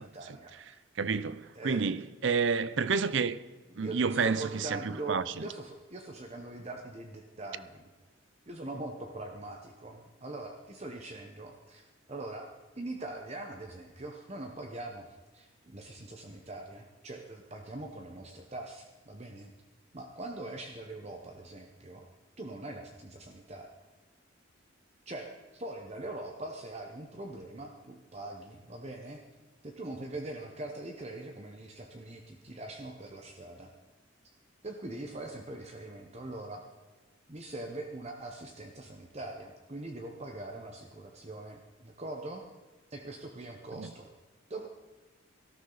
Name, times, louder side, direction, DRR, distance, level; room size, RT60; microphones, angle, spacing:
voice 1, 0.0-0.8 1.5-1.8 3.7-7.9 8.5-15.1 15.3-19.5 19.9-22.1 22.4-23.7 25.1-29.2 29.6-33.7 34.6-36.6 37.3-42.4 42.9-44.1 44.5-44.7, right 2 dB, 30° right, 1.0 m, -42 dB
voice 2, 1.0-3.4 3.8-5.5 43.7-43.9, right 5 dB, 60° right, 0.5 m, -30 dB
18.0 x 13.5 x 4.0 m
head